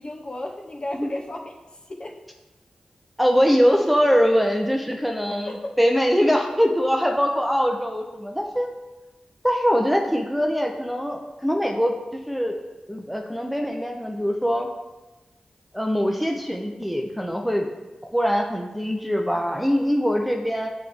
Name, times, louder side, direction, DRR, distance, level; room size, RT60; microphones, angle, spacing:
voice 1, 0.0-1.5 1.9-2.1 5.5-5.8, left 1 dB, 45° left, 1 dB, 0.9 m, -33 dB
voice 2, 3.2-8.7 9.4-12.6 12.9-14.7 15.7-17.7 18.1-20.7, equal, ahead, 2 dB, 0.6 m, -22 dB
8.2 x 3.3 x 3.5 m, 1.1 s
cardioid pair, 55°, 2 cm